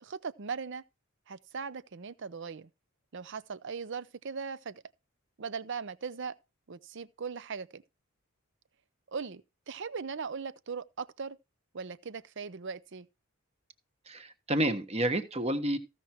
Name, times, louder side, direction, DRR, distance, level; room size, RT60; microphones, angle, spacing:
voice 1, 0.0-0.8 1.3-2.7 3.1-4.8 5.4-6.3 6.7-7.8 9.1-9.4 9.7-11.4 11.7-13.1, right 5 dB, 60° right, 0.7 m, -39 dB
voice 2, 14.1-15.8, right 1 dB, 30° right, 1.2 m, -30 dB
15.0 x 5.9 x 4.4 m
head